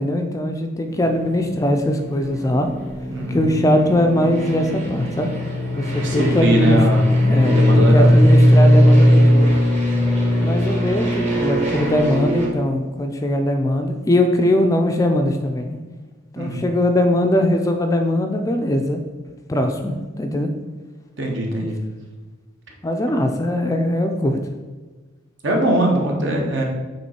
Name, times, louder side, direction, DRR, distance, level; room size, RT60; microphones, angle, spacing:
voice 1, 0.0-2.7 3.3-5.3 5.7-6.8 7.2-9.5 10.4-15.8 16.3-19.0 19.5-20.5 22.8-24.4, left 1 dB, 15° left, 5 dB, 0.3 m, -20 dB
sound 1, 0.9-12.5, equal, 35° right, 1.1 m, -18 dB
voice 2, 3.1-3.4 5.9-7.1 7.4-8.2 16.4-16.6 21.2-21.8 25.4-26.6, right 1 dB, 60° right, 0 dB, 1.2 m, -21 dB
7.2 x 3.1 x 4.3 m, 1.3 s
head